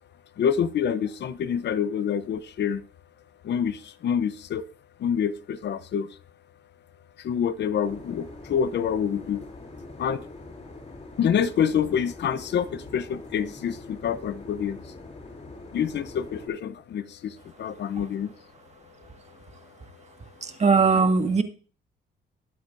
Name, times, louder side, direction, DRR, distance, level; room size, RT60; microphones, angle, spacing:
voice 1, 0.4-2.8 3.4-4.6 5.0-6.1 7.2-9.5 10.0-10.3 11.2-14.8 15.7-18.3, left 8 dB, 60° left, 14 dB, 0.8 m, -27 dB
sound 1, 7.8-16.5, left 2 dB, 35° left, 6.3 m, -44 dB
voice 2, 20.4-21.4, right 4 dB, 35° right, 6 dB, 1.7 m, -20 dB
20.5 x 8.3 x 2.6 m, 0.39 s
cardioid pair, 90°, 20 cm